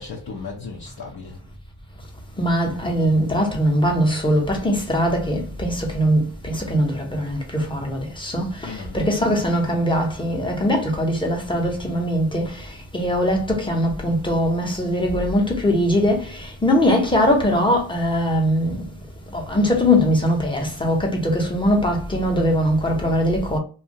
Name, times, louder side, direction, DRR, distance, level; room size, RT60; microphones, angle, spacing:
voice 1, 0.0-1.4 8.6-9.4, left 5 dB, 55° left, 0.8 m, -36 dB
voice 2, 2.4-18.8 19.3-23.6, equal, 10° left, 0.8 m, -21 dB
2.6 x 2.3 x 2.8 m
wide cardioid pair, 105°, 44 cm